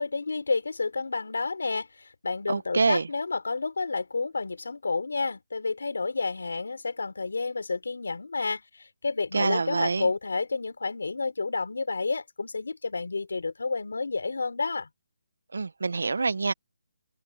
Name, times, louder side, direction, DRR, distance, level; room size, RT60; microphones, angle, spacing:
voice 1, 0.0-14.9, left 4 dB, 85° left, 3.9 m, -30 dB
voice 2, 2.5-3.1 9.3-10.1 15.5-16.5, right 4 dB, 80° right, 0.9 m, -26 dB
open air
hypercardioid pair, 165°, 0 cm